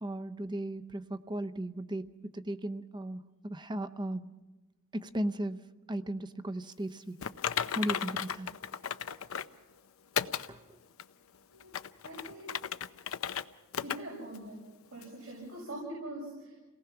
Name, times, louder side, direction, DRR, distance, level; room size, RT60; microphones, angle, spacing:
voice 1, 0.0-4.3 4.9-7.2 7.7-8.5 10.5-10.8, right 1 dB, 20° right, 12 dB, 0.7 m, -36 dB
Typing, 7.2-9.6 10.2-10.5 11.0-11.1 11.6-13.4 13.7-14.0 14.3-14.4 15.0-15.1, left 8 dB, 80° left, 0.6 m, -34 dB
voice 2, 12.0-12.6 13.8-14.6 14.9-16.6, right 1 dB, 85° right, -3 dB, 6.6 m, -43 dB
28.5 x 18.5 x 5.9 m, 1.2 s
head